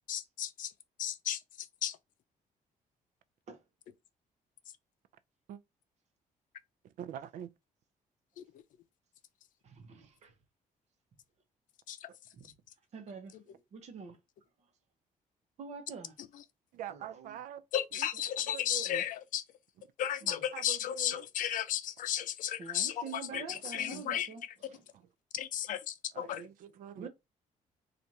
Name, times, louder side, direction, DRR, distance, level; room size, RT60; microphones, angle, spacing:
voice 1, 0.1-0.7 1.0-2.0 8.4-8.5 11.9-12.1 17.7-19.4 20.0-24.3 25.3-26.4, left 10 dB, 70° left, 0.5 m, -34 dB
voice 2, 7.0-7.5 16.7-17.6 17.9-18.1 18.5-19.0 20.3-21.3 23.3-23.4 23.9-24.0 24.9-25.0 26.1-27.1, right 10 dB, 70° right, 0.4 m, -44 dB
voice 3, 9.6-10.3 12.3-12.4 12.9-14.2 15.6-16.2 16.9-17.4 20.2-20.4 22.6-24.9 27.0-27.1, right 5 dB, 50° right, 0.9 m, -46 dB
4.4 x 2.5 x 2.7 m
cardioid pair, 160°, 14 cm